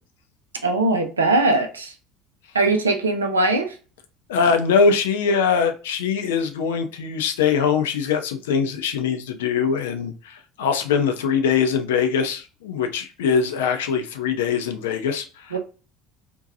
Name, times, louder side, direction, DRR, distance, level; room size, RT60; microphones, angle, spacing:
voice 1, 0.6-1.9 2.5-3.7 15.5-15.6, right 2 dB, 80° right, 0.4 m, -20 dB
voice 2, 4.3-15.6, left 6 dB, 65° left, 0.4 m, -22 dB
2.7 x 2.2 x 2.5 m
figure-of-eight pair, 65°, 0 cm